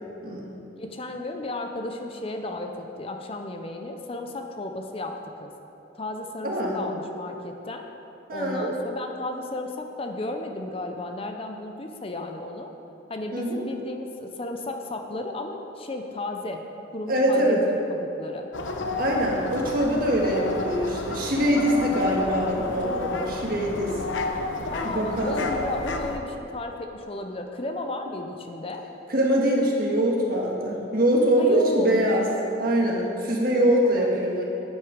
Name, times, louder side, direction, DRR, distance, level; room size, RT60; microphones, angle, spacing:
voice 1, 0.8-5.5 6.0-7.9 8.3-12.7 13.1-16.6 16.9-17.6 17.9-18.5 24.7-28.9 31.4-31.9 33.9-34.1, left 2 dB, 30° left, 4 dB, 0.6 m, -34 dB
voice 2, 6.4-6.8 8.3-8.7 13.3-13.6 17.1-17.6 19.0-24.0 24.8-25.3 29.1-32.3 32.6-34.4, equal, 50° right, -2 dB, 1.6 m, -23 dB
sound 1, 18.5-26.2, left 2 dB, 80° left, 0.8 m, -31 dB
9.1 x 8.8 x 5.1 m, 2.9 s
head